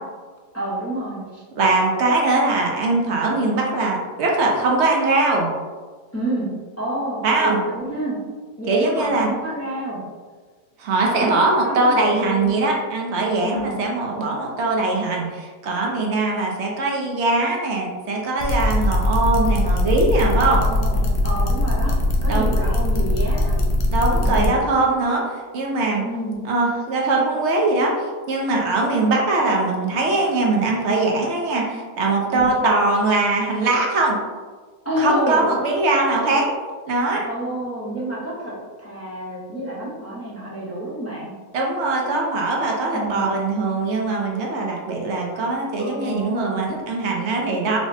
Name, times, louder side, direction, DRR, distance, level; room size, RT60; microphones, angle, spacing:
voice 1, 0.5-1.4 6.1-6.5 6.8-8.2 8.6-10.0 11.0-12.6 13.4-13.8 20.2-23.6 24.2-24.6 26.0-26.4 32.3-32.5 34.8-35.7 37.2-41.3 42.9-43.5 45.8-46.8, right 1 dB, 15° left, -8 dB, 0.5 m, -29 dB
voice 2, 1.6-5.5 7.2-7.6 8.7-9.3 10.8-20.6 22.3-22.5 23.9-26.0 26.4-27.9 28.3-34.2 35.0-36.5 36.9-37.2 41.5-47.8, right 2 dB, 60° right, -1 dB, 0.8 m, -21 dB
sound 1, 18.4-24.5, left 1 dB, 85° left, 1.1 m, -21 dB
4.8 x 2.0 x 2.6 m, 1.4 s
omnidirectional pair, 1.5 m